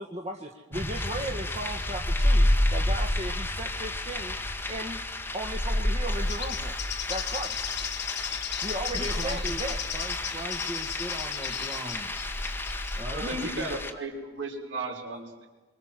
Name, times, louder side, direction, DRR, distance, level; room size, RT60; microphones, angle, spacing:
voice 1, 0.0-4.4 4.7-5.0 5.3-6.8 7.1-7.7 8.6-9.8 13.2-13.5, right 1 dB, 35° right, 2 dB, 1.8 m, -36 dB
sound 1, 0.7-13.9, left 1 dB, 10° left, 1.8 m, -30 dB
Bird, 6.1-13.0, left 10 dB, 65° left, 1.2 m, -36 dB
voice 2, 8.9-9.6 9.9-12.2 13.0-13.7, right 1 dB, 15° right, 3 dB, 1.9 m, -39 dB
voice 3, 13.1-15.5, right 2 dB, 70° right, 1 dB, 5.2 m, -35 dB
27.0 x 24.0 x 7.7 m, 1.2 s
head